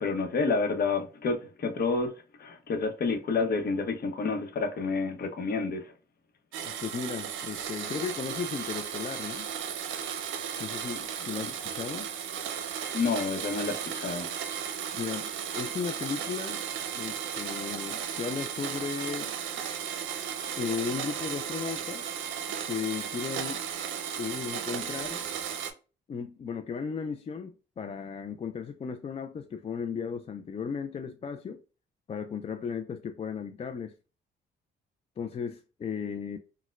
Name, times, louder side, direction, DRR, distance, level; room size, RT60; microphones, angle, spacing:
voice 1, 0.0-2.1 2.4-5.9 11.3-11.5 12.9-14.3, left 4 dB, 50° left, 0.8 m, -29 dB
Domestic sounds home sounds, 6.5-25.7, right 8 dB, 75° right, 0.6 m, -35 dB
voice 2, 6.6-9.5 10.6-12.1 14.9-16.6 16.9-19.3 20.6-22.1 22.7-23.6 24.2-25.3 26.1-31.6 32.1-33.9 35.2-36.4, left 6 dB, 30° left, 0.3 m, -35 dB
4.2 x 2.1 x 2.3 m
cardioid pair, 90°, 20 cm